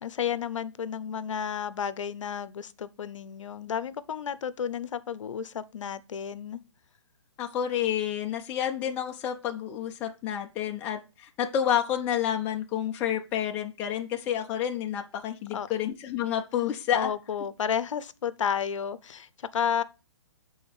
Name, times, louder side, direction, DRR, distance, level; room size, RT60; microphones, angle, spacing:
voice 1, 0.0-6.6 15.5-15.7 16.9-19.8, left 8 dB, 80° left, 0.6 m, -32 dB
voice 2, 7.4-17.1, left 10 dB, 10° left, 0.4 m, -29 dB
7.1 x 3.9 x 4.7 m
hypercardioid pair, 160°, 16 cm